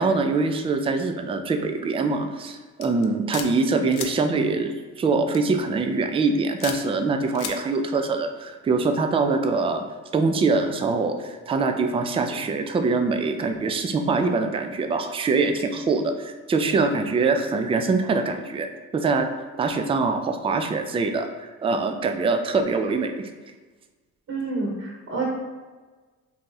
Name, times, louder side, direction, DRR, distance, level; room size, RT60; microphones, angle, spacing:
voice 1, 0.0-9.8 10.1-19.3 19.6-23.3, right 4 dB, 15° right, 6 dB, 0.3 m, -24 dB
sound 1, 2.8-3.5 3.9-4.1 5.3-5.6 6.6-6.8 7.3-7.5, left 8 dB, 60° left, 0.5 m, -33 dB
voice 2, 24.3-25.3, right 3 dB, 40° right, -2 dB, 1.0 m, -28 dB
2.7 x 2.3 x 3.8 m, 1.3 s
supercardioid pair, 60°, 36 cm